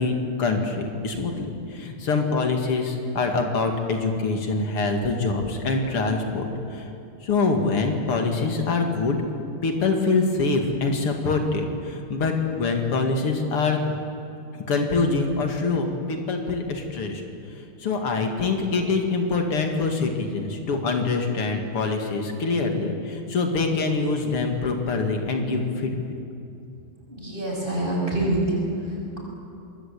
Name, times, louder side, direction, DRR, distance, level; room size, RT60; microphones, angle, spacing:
voice 1, 0.0-6.8 7.2-9.2 9.6-13.8 14.5-17.2 17.8-25.9, left 3 dB, 80° left, 4 dB, 3.1 m, -24 dB
voice 2, 27.1-29.2, right 1 dB, 20° right, -2 dB, 7.0 m, -26 dB
26.0 x 20.5 x 8.6 m, 2.7 s
omnidirectional pair, 2.4 m